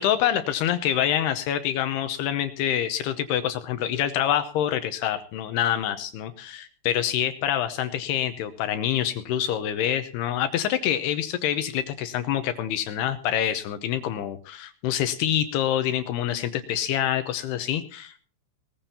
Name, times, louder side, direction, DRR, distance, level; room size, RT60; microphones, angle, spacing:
voice 1, 0.0-18.2, left 10 dB, 75° left, 10 dB, 2.4 m, -26 dB
19.5 x 14.5 x 2.8 m, 0.39 s
omnidirectional pair, 5.6 m